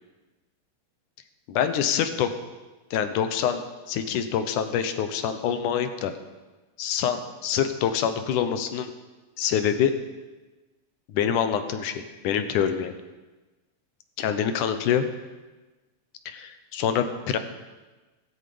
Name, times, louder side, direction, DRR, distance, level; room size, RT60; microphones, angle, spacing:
voice 1, 1.5-2.3 2.9-6.1 6.8-8.9 9.4-9.9 11.1-12.9 14.2-15.1 16.3-17.4, left 8 dB, 70° left, 9 dB, 2.4 m, -26 dB
17.5 x 15.0 x 5.1 m, 1.2 s
omnidirectional pair, 3.9 m